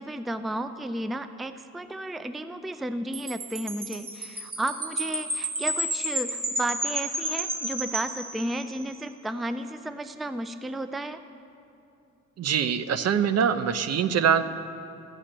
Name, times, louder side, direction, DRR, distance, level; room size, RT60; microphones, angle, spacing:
voice 1, 0.0-11.2, right 1 dB, ahead, 10 dB, 0.4 m, -33 dB
Wind chime, 3.1-8.8, right 1 dB, 30° right, 1.9 m, -31 dB
voice 2, 12.4-14.4, right 7 dB, 55° right, 12 dB, 0.7 m, -23 dB
13.5 x 6.3 x 8.9 m, 2.7 s
cardioid pair, 90°, 30 cm